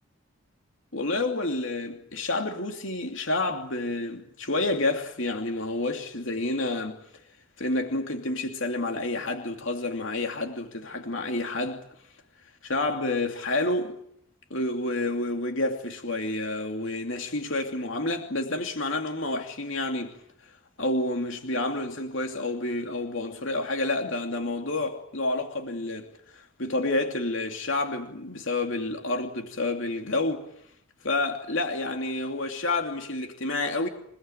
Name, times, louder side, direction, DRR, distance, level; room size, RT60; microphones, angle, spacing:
voice 1, 0.9-7.0 7.6-11.8 12.6-14.0 14.5-20.1 20.8-26.1 26.3-30.4 31.0-33.9, left 2 dB, 65° left, 2.7 m, -29 dB
28.0 x 19.0 x 9.0 m
head